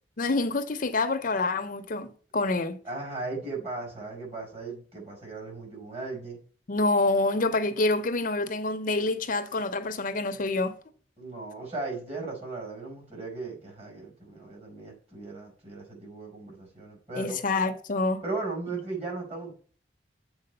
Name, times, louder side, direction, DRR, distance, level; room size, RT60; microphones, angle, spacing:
voice 1, 0.2-2.8 6.7-10.7 17.2-18.2, left 2 dB, 50° left, 0.6 m, -27 dB
voice 2, 2.8-6.4 11.2-17.4 18.2-19.5, right 3 dB, 35° right, 4.9 m, -37 dB
7.6 x 4.6 x 6.6 m
head